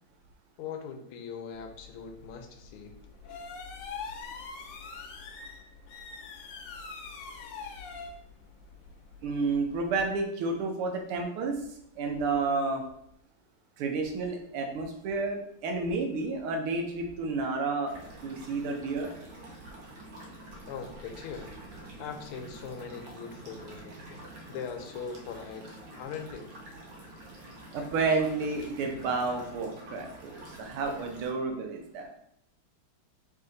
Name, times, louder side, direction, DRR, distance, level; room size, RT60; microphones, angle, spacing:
voice 1, 0.6-2.9 20.7-21.5 22.0-25.7 26.0-26.5, left 6 dB, 90° left, 5 dB, 1.5 m, -41 dB
sound 1, 1.5-10.1, left 4 dB, 70° left, 1.1 m, -44 dB
voice 2, 9.2-11.6 12.0-12.8 13.8-17.9 18.2-19.1 27.7-32.1, right 3 dB, 85° right, 3 dB, 1.6 m, -31 dB
sound 2, 17.8-31.3, right 1 dB, 65° right, 1.5 m, -47 dB
3.7 x 3.3 x 3.8 m, 0.72 s
omnidirectional pair, 2.4 m